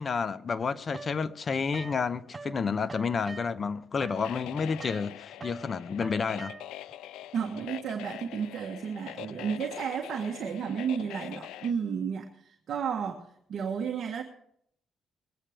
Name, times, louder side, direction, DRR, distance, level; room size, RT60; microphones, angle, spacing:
voice 1, 0.0-6.5, left 5 dB, 40° left, 0.8 m, -30 dB
sound 1, 0.9-2.6 2.9-6.9, right 3 dB, 25° right, 0.8 m, -44 dB
sound 2, 4.2-11.7, left 13 dB, 90° left, 0.5 m, -44 dB
voice 2, 7.3-14.2, right 7 dB, 60° right, 1.5 m, -32 dB
21.5 x 8.7 x 5.1 m
cardioid pair, 90°, 0 cm